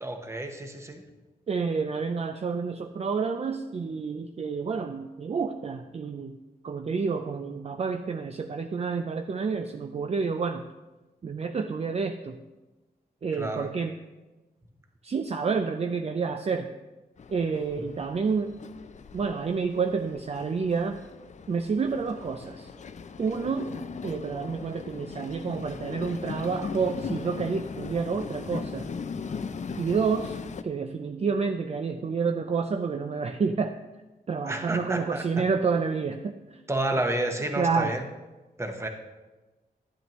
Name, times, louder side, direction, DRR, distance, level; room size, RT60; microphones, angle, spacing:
voice 1, 0.0-1.0 13.4-13.7 34.4-35.4 36.7-38.0 38.6-38.9, right 1 dB, 15° right, 4 dB, 1.1 m, -30 dB
voice 2, 1.5-6.4 6.6-10.6 11.2-12.4 13.2-13.9 15.0-16.7 17.3-18.5 19.1-21.0 21.5-22.7 23.2-23.7 24.0-28.9 29.8-30.4 30.6-33.8 34.3-36.6 37.5-38.0, right 5 dB, 40° right, 6 dB, 0.4 m, -29 dB
Train, 17.2-30.6, left 5 dB, 50° left, 0.5 m, -39 dB
11.0 x 10.5 x 3.1 m, 1.2 s
wide cardioid pair, 120°, 16 cm